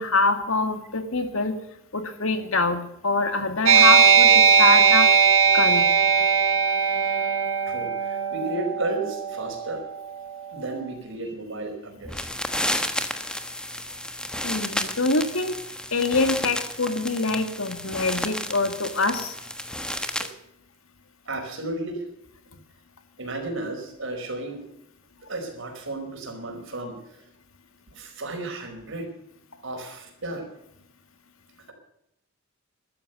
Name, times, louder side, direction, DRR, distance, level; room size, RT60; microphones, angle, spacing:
voice 1, 0.0-1.5 1.9-4.3 4.6-5.1 5.5-5.8 14.4-15.5 15.9-19.3, left 3 dB, 75° left, 8 dB, 2.1 m, -24 dB
sound 1, 3.7-10.7, right 6 dB, 80° right, 2.3 m, -19 dB
voice 2, 7.7-9.8 10.5-12.3 21.3-22.0 23.2-24.6 25.2-27.2 27.9-29.1 29.6-30.5, right 2 dB, 65° right, 3 dB, 4.9 m, -33 dB
sound 2, 12.0-20.3, left 1 dB, 5° left, 1.2 m, -32 dB
13.5 x 13.0 x 6.7 m, 0.78 s
head